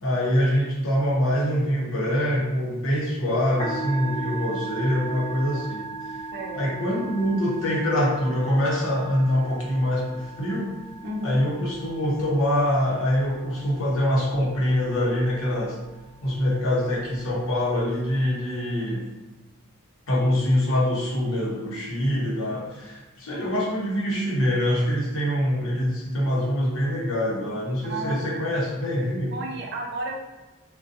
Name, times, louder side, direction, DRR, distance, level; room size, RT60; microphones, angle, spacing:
voice 1, 0.0-6.2 6.5-10.7 11.2-15.8 16.2-19.1 20.1-29.4, equal, 65° left, -5 dB, 0.8 m, -24 dB
Musical instrument, 3.5-18.2, right 3 dB, 20° left, 0.7 m, -38 dB
voice 2, 6.3-6.6 11.0-11.5 27.8-28.5 29.3-30.2, right 1 dB, 50° right, 0 dB, 0.4 m, -32 dB
2.6 x 2.2 x 2.5 m, 1.1 s
head